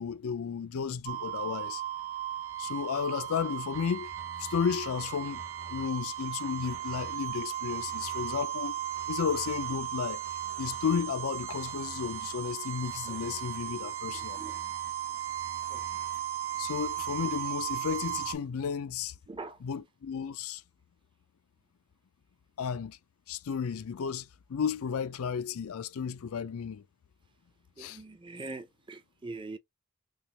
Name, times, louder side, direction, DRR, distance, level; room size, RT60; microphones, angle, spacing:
voice 1, 0.0-1.8 2.6-4.1 4.4-5.4 5.7-8.8 9.1-10.2 10.6-14.4 16.6-19.1 19.6-20.6 22.6-23.0 23.3-26.8 27.8-28.0, left 7 dB, 75° left, 0.4 m, -33 dB
sound 1, 1.1-18.4, right 11 dB, 65° right, 0.8 m, -36 dB
voice 2, 19.3-19.6 27.8-29.6, right 3 dB, 20° right, 0.5 m, -43 dB
3.5 x 2.9 x 2.8 m
head